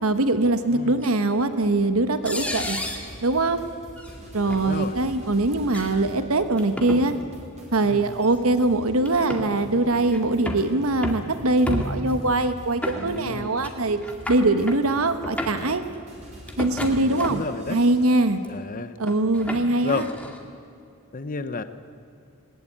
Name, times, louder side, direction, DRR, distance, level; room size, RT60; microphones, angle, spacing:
voice 1, 0.0-2.8 3.2-3.6 4.3-7.1 7.7-14.0 14.3-15.8 16.6-17.4 17.7-18.4 19.0-20.1, right 2 dB, 70° right, 10 dB, 1.2 m, -22 dB
sound 1, 1.0-1.1 2.2-3.1 4.0-4.1 4.5-4.6 5.6-5.9 6.6-7.0 8.2-8.3 9.0-9.5 10.1-10.7 11.0-11.3 11.7-12.2 12.8-13.4 13.6-13.7 14.0-14.8 15.2-15.7 16.5-17.5 18.1-18.5 19.1-20.4, left 1 dB, 5° left, 2.2 m, -32 dB
sound 2, 2.4-18.3, right 1 dB, 30° right, 5.1 m, -45 dB
voice 2, 4.4-5.0 7.9-8.1 13.0-13.5 17.1-17.8 18.5-18.9 19.8-20.1 21.1-21.6, left 3 dB, 40° left, 11 dB, 0.9 m, -31 dB
20.0 x 19.5 x 8.9 m, 2.6 s
head